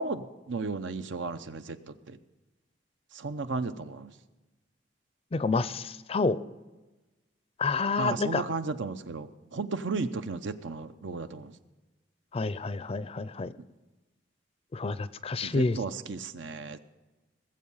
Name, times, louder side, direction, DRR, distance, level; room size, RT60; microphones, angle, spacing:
voice 1, 0.0-1.8 2.1-2.2 3.1-4.1 8.0-11.5 15.4-16.8, right 4 dB, 80° right, 10 dB, 0.7 m, -34 dB
voice 2, 5.3-6.4 7.6-8.4 12.3-13.5 14.7-15.8, left 3 dB, 30° left, 15 dB, 0.4 m, -29 dB
19.5 x 7.5 x 5.5 m, 1.1 s
head